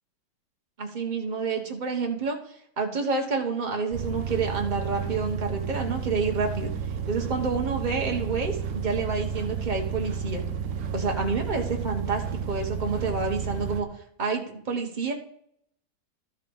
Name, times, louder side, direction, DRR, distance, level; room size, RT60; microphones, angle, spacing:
voice 1, 0.8-2.4 2.8-6.7 7.1-10.4 10.9-13.9 14.2-15.1, right 4 dB, 30° right, 2 dB, 1.5 m, -28 dB
sound 1, 3.9-13.8, right 6 dB, 80° right, 1.4 m, -32 dB
12.5 x 4.6 x 5.4 m, 0.69 s
omnidirectional pair, 1.8 m